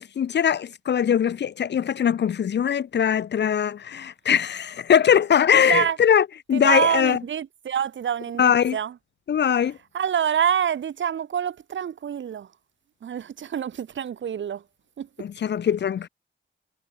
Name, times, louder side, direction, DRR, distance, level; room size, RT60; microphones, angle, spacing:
voice 1, 0.0-7.2 8.4-8.8 9.3-9.8 15.2-16.1, left 8 dB, 60° left, 0.6 m, -21 dB
voice 2, 5.6-6.0 6.5-8.9 9.9-12.5 13.0-14.6 15.0-15.1, right 8 dB, 70° right, 0.9 m, -26 dB
wide cardioid pair, 150°, 21 cm